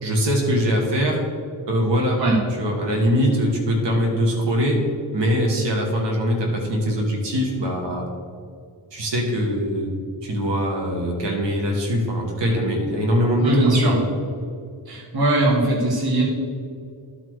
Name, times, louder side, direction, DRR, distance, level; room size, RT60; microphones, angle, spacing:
voice 1, 0.0-1.2 1.7-2.2 2.6-4.8 5.1-8.1 8.9-9.9 10.2-14.0, equal, 75° right, 0 dB, 1.5 m, -22 dB
voice 2, 13.4-14.0 14.9-16.2, right 1 dB, 55° right, -4 dB, 1.9 m, -20 dB
11.5 x 4.3 x 4.7 m, 2.3 s
wide cardioid pair, 105°, 43 cm